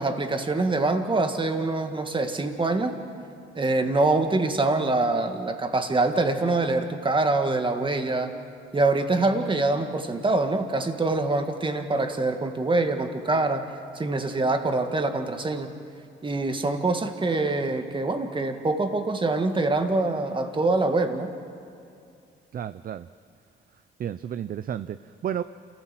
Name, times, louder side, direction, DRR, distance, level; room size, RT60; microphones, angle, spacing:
voice 1, 0.0-3.0 3.6-8.3 8.7-13.7 14.0-15.7 16.2-21.3, right 2 dB, 25° right, 6 dB, 1.9 m, -25 dB
voice 2, 22.5-23.1 24.0-25.4, right 9 dB, 45° right, 13 dB, 0.5 m, -32 dB
28.0 x 14.5 x 7.6 m, 2.5 s
cardioid pair, 90°, 20 cm